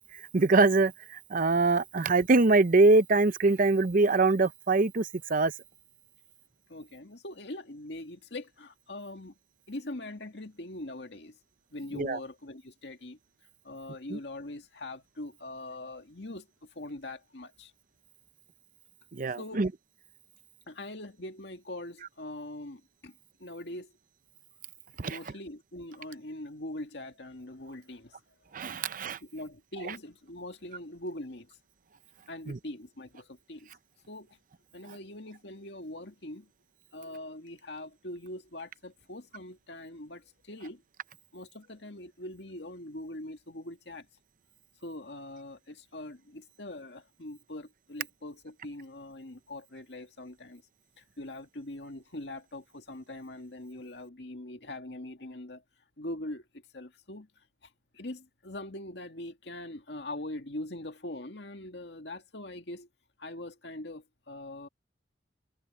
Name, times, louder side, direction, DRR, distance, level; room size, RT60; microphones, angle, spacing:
voice 1, 0.1-5.5 11.9-12.2 14.1-14.2 19.1-19.7 25.0-25.2 28.5-29.2 32.5-32.6, right 3 dB, 50° right, 0.7 m, -24 dB
voice 2, 6.7-9.4 9.7-11.4 11.7-13.2 13.6-17.7 19.4-19.7 20.7-23.9 25.0-28.2 29.2-31.6 32.3-33.7 34.1-34.4 34.7-36.5 36.9-40.8 41.3-44.1 44.8-50.6 51.0-55.6 56.0-62.9 63.2-64.7, left 1 dB, 70° left, 2.3 m, -42 dB
head